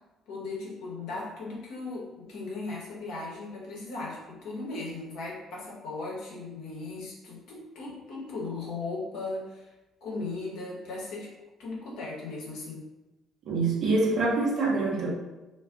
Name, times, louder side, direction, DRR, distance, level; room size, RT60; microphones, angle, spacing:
voice 1, 0.3-9.7 10.0-11.3 11.6-12.9, left 3 dB, 60° left, -5 dB, 0.8 m, -37 dB
voice 2, 13.5-15.1, right 3 dB, 55° right, -2 dB, 0.7 m, -25 dB
2.4 x 2.2 x 3.5 m, 1.1 s
figure-of-eight pair, 45°, 0 cm